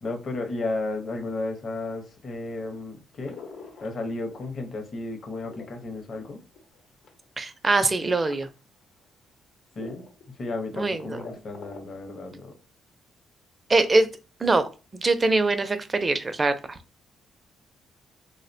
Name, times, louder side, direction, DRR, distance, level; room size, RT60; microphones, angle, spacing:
voice 1, 0.0-3.4 3.8-6.4 9.8-10.0 10.4-12.5, left 2 dB, 50° left, 4 dB, 0.7 m, -33 dB
sound 1, 3.2-4.6 5.0-7.2 8.0-8.5 9.0-9.1 9.8-10.2 10.5-10.6 10.9-12.0, left 5 dB, 80° left, 0.9 m, -44 dB
voice 2, 7.4-8.5 10.7-11.2 13.7-14.1 14.4-16.8, right 3 dB, 25° right, 10 dB, 0.4 m, -23 dB
2.7 x 2.0 x 2.6 m, 0.32 s
cardioid pair, 95°, 0 cm